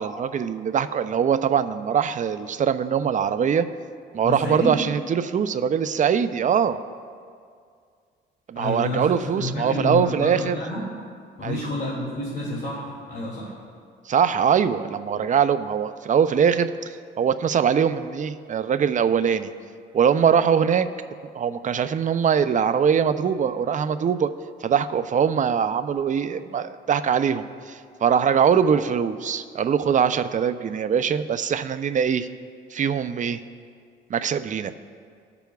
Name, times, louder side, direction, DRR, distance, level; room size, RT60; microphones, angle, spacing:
voice 1, 0.0-3.7 4.1-6.8 8.5-10.6 11.4-11.6 14.1-19.5 19.9-20.9 21.3-24.3 24.6-32.3 32.7-33.4 34.1-34.7, right 7 dB, 40° right, 11 dB, 0.5 m, -22 dB
voice 2, 4.2-4.7 8.5-10.9 11.4-13.5, left 1 dB, 50° left, -5 dB, 2.4 m, -29 dB
19.5 x 6.9 x 2.3 m, 2.2 s
cardioid pair, 90°, 20 cm